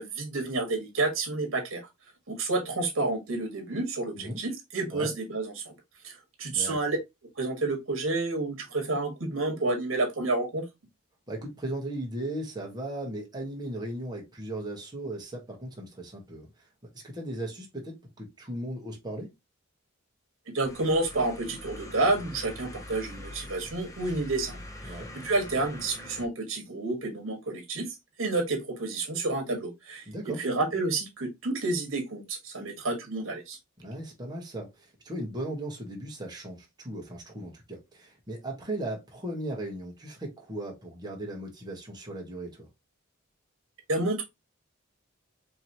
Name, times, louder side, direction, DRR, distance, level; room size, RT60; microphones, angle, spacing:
voice 1, 0.0-1.8 2.3-5.7 6.0-7.0 7.4-10.6 20.5-24.6 24.8-24.9 25.2-27.9 28.2-30.0 30.4-33.6 43.9-44.2, right 2 dB, 70° right, 1.5 m, -29 dB
voice 2, 11.3-16.5 16.9-19.3 24.9-25.1 30.1-30.4 33.8-42.7, right 1 dB, 20° right, 1.3 m, -37 dB
sound 1, 20.6-26.3, left 1 dB, 15° left, 0.7 m, -44 dB
4.7 x 3.0 x 2.8 m
head